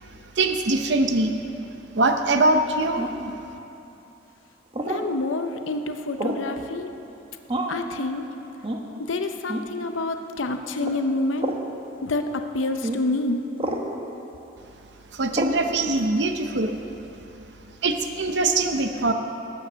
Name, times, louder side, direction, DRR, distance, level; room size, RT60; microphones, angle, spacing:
voice 1, 0.4-1.3 2.0-3.1 15.1-16.7 17.8-19.1, right 2 dB, 60° right, 6 dB, 0.7 m, -22 dB
sound 1, 3.0-3.3 4.7-5.1 6.2-6.5 7.5-7.9 8.6-8.8 9.5-9.7 10.8-11.0 11.4-11.6 12.8-13.0 13.6-13.9 15.3-15.6, right 1 dB, 30° right, 1.0 m, -28 dB
voice 2, 4.8-6.9 7.7-8.2 9.1-11.5 12.0-13.4, left 2 dB, 90° left, 6 dB, 0.7 m, -27 dB
14.5 x 9.1 x 6.3 m, 2.8 s
head